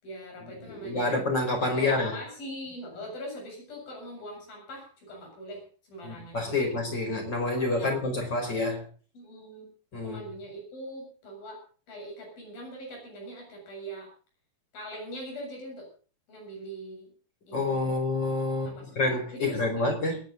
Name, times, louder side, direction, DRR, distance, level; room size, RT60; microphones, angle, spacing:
voice 1, 0.0-1.2 1.7-5.6 5.9-6.7 7.1-7.2 7.7-8.5 9.1-9.7 10.0-11.6 11.9-14.1 14.7-15.9 16.3-17.1 17.5-17.9 18.7-19.9, equal, 75° left, 0 dB, 9.4 m, -42 dB
voice 2, 0.7-2.1 6.0-8.8 9.9-10.2 17.5-20.2, left 2 dB, 30° left, 2 dB, 5.6 m, -28 dB
29.0 x 10.5 x 4.0 m, 0.41 s
omnidirectional pair, 4.2 m